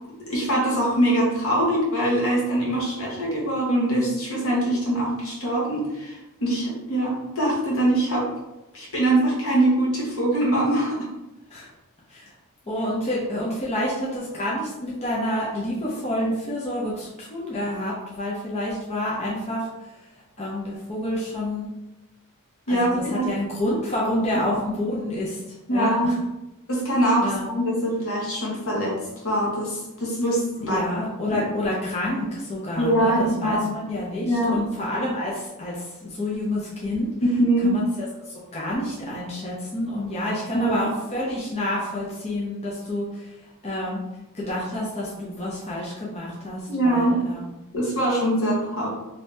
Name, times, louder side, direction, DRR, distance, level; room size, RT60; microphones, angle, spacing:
voice 1, 0.3-8.3 8.7-11.1 22.7-23.3 25.7-26.1 26.7-29.0 29.2-30.8 31.2-31.4 32.8-33.9 34.2-34.6 37.2-37.8 40.5-40.8 46.7-47.1 47.7-48.9, right 1 dB, 65° left, -3 dB, 1.1 m, -23 dB
voice 2, 12.7-19.7 20.4-21.7 22.7-25.4 25.7-26.1 27.2-27.5 30.6-37.1 37.6-37.8 38.3-43.3 43.6-44.0 44.3-47.4, left 1 dB, 30° left, -6 dB, 0.7 m, -28 dB
2.8 x 2.6 x 3.3 m, 1.0 s
head